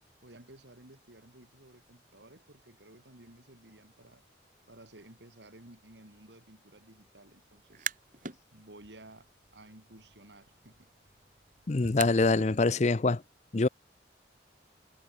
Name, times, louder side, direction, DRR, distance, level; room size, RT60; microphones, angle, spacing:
voice 1, 0.2-4.2 4.7-7.9 8.5-10.9, right 1 dB, 75° right, 3.8 m, -54 dB
sound 1, 7.6-8.4 8.8-12.5, right 7 dB, 45° right, 3.8 m, -43 dB
voice 2, 11.7-13.2 13.5-13.7, left 3 dB, 40° left, 0.6 m, -25 dB
head